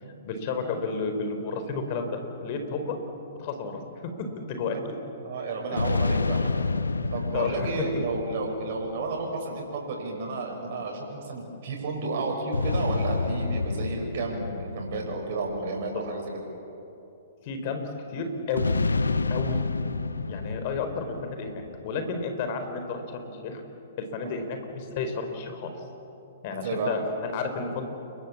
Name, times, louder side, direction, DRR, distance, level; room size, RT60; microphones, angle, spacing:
voice 1, 0.2-3.0 3.4-4.0 4.3-4.9 7.3-7.7 17.4-18.8 19.3-19.6 20.3-23.6 24.0-25.7 26.4-27.9, left 4 dB, 45° left, 7 dB, 4.3 m, -32 dB
voice 2, 5.2-6.7 7.1-16.3 24.2-24.3 26.6-26.9, right 3 dB, 55° right, 0 dB, 6.5 m, -32 dB
sound 1, 5.8-9.4 12.5-16.2 18.6-22.0, left 3 dB, 85° left, 0.9 m, -29 dB
29.5 x 23.0 x 7.4 m, 3.0 s
hypercardioid pair, 120°, 0 cm